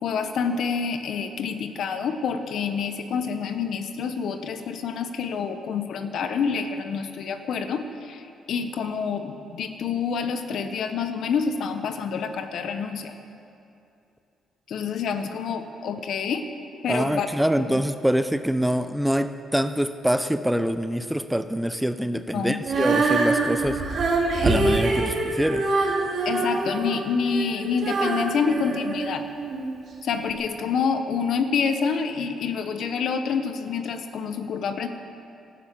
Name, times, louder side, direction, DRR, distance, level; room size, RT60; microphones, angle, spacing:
voice 1, 0.0-13.1 14.7-16.4 16.8-17.3 17.7-17.8 22.3-22.6 26.2-29.3 30.0-34.9, left 6 dB, 70° left, 8 dB, 1.2 m, -27 dB
voice 2, 16.9-23.8 24.4-25.7, equal, 5° right, 11 dB, 0.6 m, -25 dB
Female singing, 22.6-29.7 30.3-30.4, right 3 dB, 60° right, 2.7 m, -25 dB
12.5 x 11.5 x 8.3 m, 2.7 s
cardioid pair, 90°, 0 cm